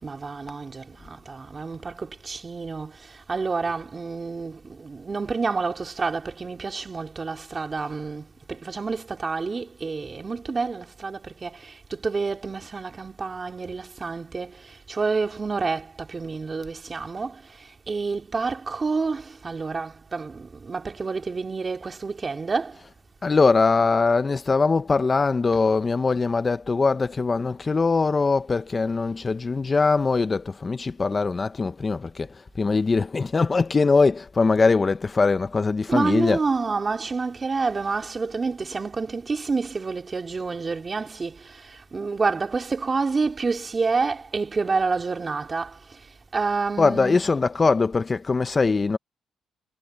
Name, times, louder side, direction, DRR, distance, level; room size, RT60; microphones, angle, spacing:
voice 1, 0.0-2.9 3.3-14.5 14.9-17.3 17.9-22.7 35.9-41.4 41.9-45.7 46.3-47.2, right 4 dB, 30° right, 3.4 m, -28 dB
voice 2, 23.2-36.4 46.8-49.0, left 4 dB, 30° left, 0.9 m, -22 dB
cardioid pair, 90°, 0 cm